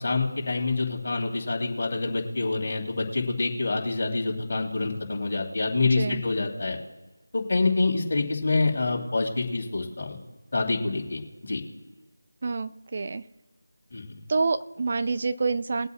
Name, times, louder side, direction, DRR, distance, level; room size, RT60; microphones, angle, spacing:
voice 1, 0.0-6.8 7.3-10.2 10.5-11.6 13.9-14.2, left 3 dB, 45° left, 0 dB, 2.8 m, -27 dB
voice 2, 12.4-13.2 14.3-15.9, right 4 dB, 35° right, 11 dB, 0.5 m, -27 dB
21.5 x 8.1 x 2.4 m, 1.1 s
figure-of-eight pair, 165°, 0 cm